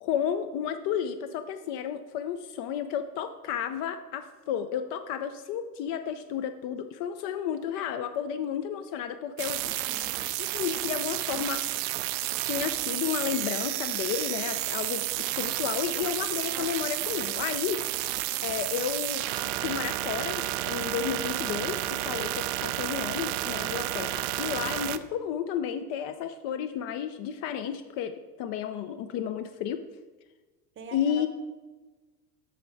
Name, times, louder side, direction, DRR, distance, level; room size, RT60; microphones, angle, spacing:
voice 1, 0.0-9.6 10.4-11.6 12.4-17.8 18.4-19.3 19.6-29.8 30.9-31.3, left 9 dB, 40° left, 9 dB, 0.4 m, -32 dB
sound 1, 9.4-25.0, right 15 dB, 55° right, 0.5 m, -31 dB
voice 2, 9.5-10.3 30.8-31.3, right 4 dB, 25° right, 8 dB, 0.8 m, -46 dB
7.6 x 5.9 x 3.2 m, 1.2 s
hypercardioid pair, 80°, 50 cm